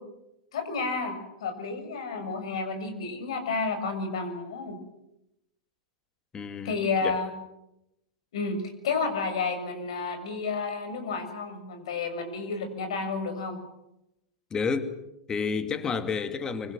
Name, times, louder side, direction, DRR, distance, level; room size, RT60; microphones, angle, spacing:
voice 1, 0.5-4.8 6.6-7.3 8.3-13.6, left 4 dB, 65° left, 6.9 m, -31 dB
voice 2, 6.3-6.8 7.0-7.2 14.5-14.9 15.3-16.7, left 5 dB, 20° left, 2.5 m, -30 dB
25.5 x 25.0 x 7.7 m
figure-of-eight pair, 95°, 3 cm